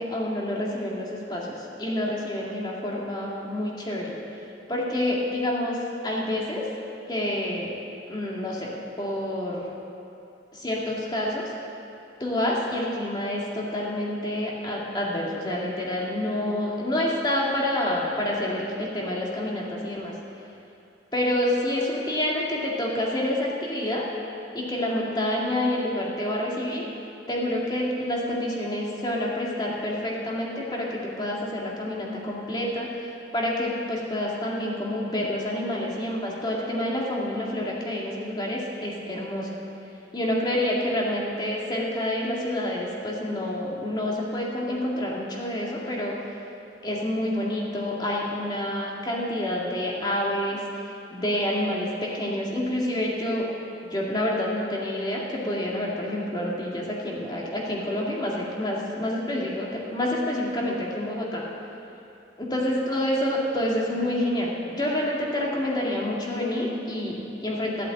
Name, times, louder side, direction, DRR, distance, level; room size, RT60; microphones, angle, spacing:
voice 1, 0.0-4.2 4.7-6.7 7.1-7.7 8.1-8.7 9.0-9.7 10.5-11.5 12.2-20.1 21.1-24.1 24.5-26.9 27.3-33.1 33.3-39.5 40.1-46.2 46.8-53.5 53.9-61.4 62.4-67.9, left 1 dB, 25° left, -3 dB, 2.3 m, -28 dB
14.5 x 8.3 x 8.8 m, 2.7 s
head